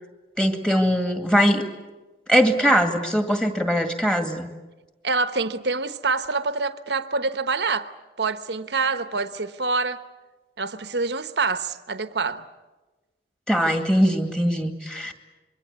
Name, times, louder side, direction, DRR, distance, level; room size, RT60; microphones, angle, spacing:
voice 1, 0.4-1.6 2.3-4.5 13.5-15.1, equal, 5° left, 2.1 m, -21 dB
voice 2, 5.0-7.9 8.2-10.0 10.6-12.5, right 4 dB, 80° right, 1.1 m, -26 dB
25.5 x 23.0 x 8.3 m
head